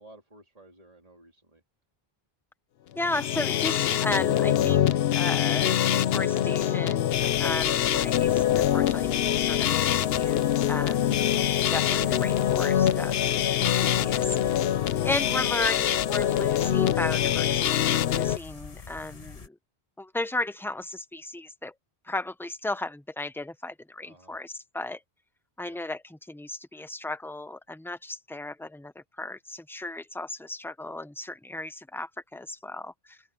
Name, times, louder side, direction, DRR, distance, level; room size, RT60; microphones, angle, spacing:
voice 1, 0.0-1.6 24.0-24.4 25.7-25.8, right 1 dB, 35° right, 3.7 m, -54 dB
voice 2, 2.9-4.8 5.1-11.2 11.7-13.1 13.6-14.6 15.0-19.6 20.0-21.7 22.0-25.0 25.6-33.2, left 2 dB, 5° left, 0.7 m, -35 dB
sound 1, 3.0-18.4, left 10 dB, 75° left, 0.8 m, -24 dB
sound 2, 7.1-19.5, left 5 dB, 40° left, 0.9 m, -43 dB
open air
omnidirectional pair, 1.0 m